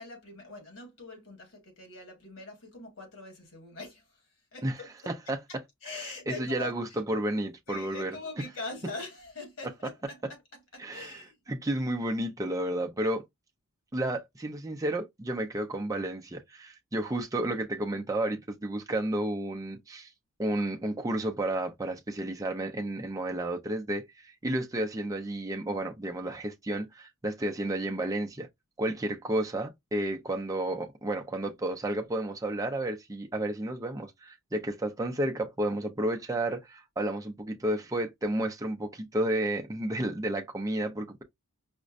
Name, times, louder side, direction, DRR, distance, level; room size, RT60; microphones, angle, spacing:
voice 1, 0.0-4.2 4.5-4.9 5.8-7.0 7.7-11.3, left 3 dB, 60° left, 1.6 m, -43 dB
voice 2, 5.1-5.4 5.9-8.1 10.8-11.2 11.5-13.2 13.9-20.1 20.4-28.5 28.8-41.2, right 1 dB, 15° right, 0.4 m, -32 dB
5.0 x 2.1 x 2.5 m
head